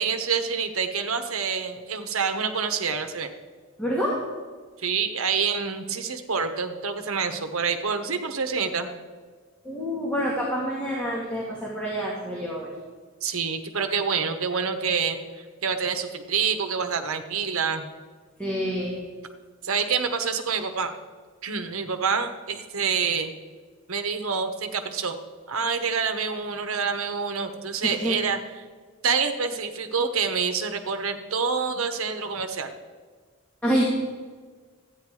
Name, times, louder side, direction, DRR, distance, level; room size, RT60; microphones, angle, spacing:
voice 1, 0.0-3.3 4.8-8.9 13.2-15.2 15.6-17.8 19.6-20.9 21.4-23.3 23.9-25.1 25.5-28.4 29.0-32.7, right 5 dB, 80° right, 7 dB, 1.1 m, -27 dB
voice 2, 3.8-4.2 9.6-12.7 18.4-19.0 27.8-28.2 33.6-33.8, equal, 5° left, -5 dB, 1.8 m, -27 dB
13.5 x 9.4 x 4.8 m, 1.5 s
head